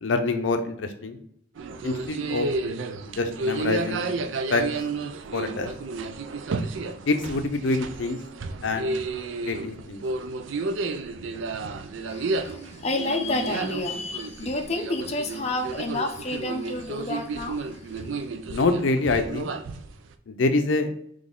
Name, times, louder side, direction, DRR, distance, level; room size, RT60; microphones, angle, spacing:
voice 1, 0.0-1.2 1.8-2.5 3.2-4.0 4.5-4.6 5.3-5.7 7.1-8.2 8.6-8.9 9.4-10.0 18.5-19.5 20.3-20.9, left 3 dB, 85° left, 7 dB, 0.5 m, -25 dB
sound 1, 1.6-20.1, right 3 dB, 85° right, 0.4 m, -32 dB
voice 2, 12.1-17.8, left 2 dB, 35° left, 3 dB, 0.5 m, -30 dB
4.1 x 3.2 x 3.7 m, 0.70 s
head